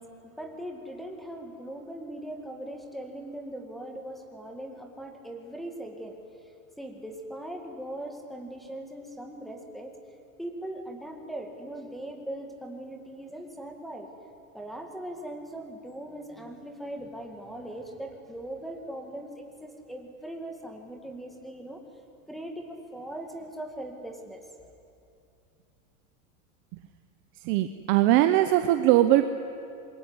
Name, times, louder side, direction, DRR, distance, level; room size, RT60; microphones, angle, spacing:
voice 1, 0.0-6.2 6.8-9.9 10.4-14.1 14.5-22.0 22.3-24.5, right 1 dB, ahead, 4 dB, 2.0 m, -40 dB
voice 2, 27.4-29.2, right 14 dB, 30° right, 9 dB, 0.7 m, -21 dB
26.5 x 22.0 x 9.7 m, 2.5 s
supercardioid pair, 170°, 39 cm